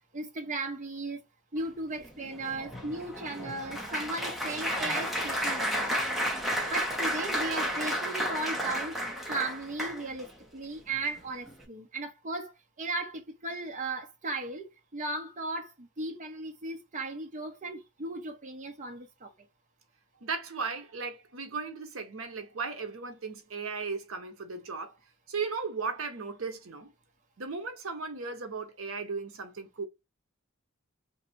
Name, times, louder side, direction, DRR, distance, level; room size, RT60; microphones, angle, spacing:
voice 1, 0.1-1.2 1.5-6.0 6.7-9.0 9.3-19.3, right 2 dB, 35° right, 0.8 m, -36 dB
Applause, 2.0-10.3 10.9-11.2 11.5-11.6, equal, ahead, 0.9 m, -32 dB
voice 2, 20.2-25.0 25.3-26.9 27.4-29.8, right 4 dB, 70° right, 0.8 m, -36 dB
3.3 x 2.6 x 4.2 m
head